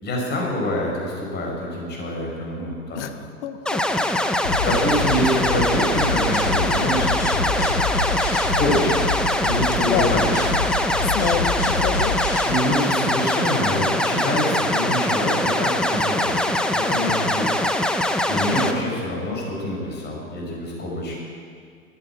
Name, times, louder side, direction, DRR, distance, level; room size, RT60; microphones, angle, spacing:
voice 1, 0.0-3.2 4.6-7.8 8.6-9.1 9.4-10.5 12.5-17.5 18.3-21.2, left 1 dB, 25° left, -2 dB, 5.2 m, -26 dB
voice 2, 3.4-3.8 9.8-10.1 11.1-12.2, left 9 dB, 55° left, 9 dB, 1.3 m, -27 dB
sound 1, 3.7-18.7, left 1 dB, ahead, 0.7 m, -22 dB
sound 2, 4.4-12.4, left 2 dB, 75° left, 3.0 m, -27 dB
13.0 x 11.0 x 9.1 m, 2.1 s
hypercardioid pair, 105°, 42 cm